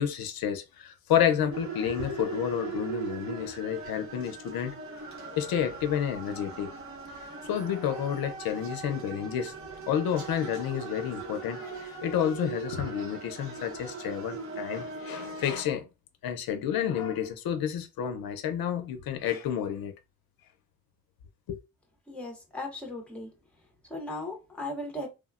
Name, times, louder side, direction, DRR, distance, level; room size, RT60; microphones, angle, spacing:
voice 1, 0.0-4.8 5.4-6.7 7.4-9.5 9.9-15.9 16.2-19.9 21.5-21.6, left 9 dB, 80° left, 0.5 m, -30 dB
sound 1, 1.5-15.6, right 5 dB, 40° right, 0.7 m, -39 dB
voice 2, 22.1-23.3 23.9-25.1, left 1 dB, 5° left, 0.6 m, -37 dB
3.2 x 2.0 x 2.3 m
wide cardioid pair, 160°, 35 cm